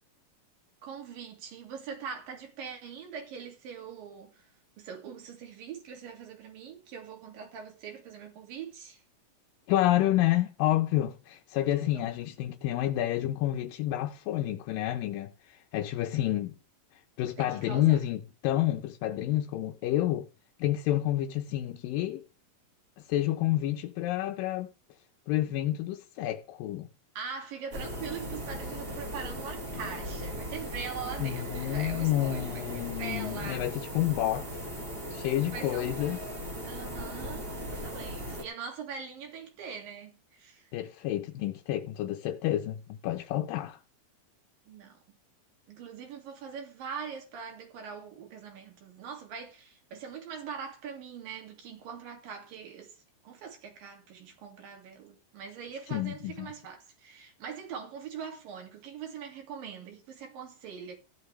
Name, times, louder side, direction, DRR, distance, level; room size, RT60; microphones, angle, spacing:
voice 1, 0.8-4.5 4.8-9.0 11.9-12.3 17.4-18.0 27.2-33.7 35.5-35.9 36.7-40.7 44.7-45.0 45.7-53.0 53.2-61.0, right 6 dB, 90° right, 4.1 m, -42 dB
voice 2, 9.7-16.6 17.2-20.3 20.6-22.2 23.1-24.7 25.3-26.9 31.2-34.7 35.1-36.2 40.7-43.8 55.9-56.5, left 14 dB, 85° left, 2.5 m, -29 dB
sound 1, 27.7-38.4, equal, 20° right, 1.7 m, -38 dB
15.0 x 10.5 x 3.2 m
omnidirectional pair, 3.9 m